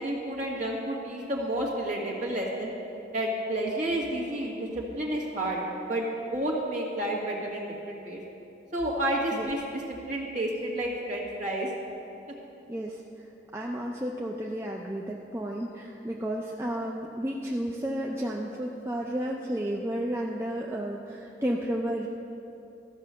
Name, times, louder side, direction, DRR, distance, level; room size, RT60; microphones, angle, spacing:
voice 1, 0.0-2.7 3.1-5.6 5.9-6.0 6.3-8.2 8.7-11.7, right 1 dB, 40° right, -3 dB, 1.9 m, -30 dB
voice 2, 12.7-13.0 13.5-22.1, right 1 dB, 15° right, -2 dB, 0.5 m, -32 dB
14.0 x 6.1 x 6.8 m, 2.9 s
head